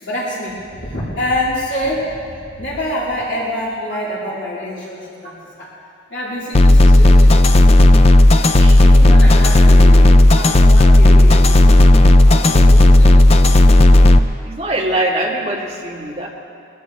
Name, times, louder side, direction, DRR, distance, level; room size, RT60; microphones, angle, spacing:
voice 1, 0.0-5.7 6.1-7.7 8.8-13.5, left 1 dB, 60° left, -8 dB, 3.6 m, -26 dB
sound 1, 6.5-14.2, left 1 dB, 30° left, 0.4 m, -9 dB
voice 2, 14.4-16.3, right 1 dB, 30° right, -4 dB, 2.3 m, -22 dB
23.0 x 15.0 x 3.2 m, 2.5 s
head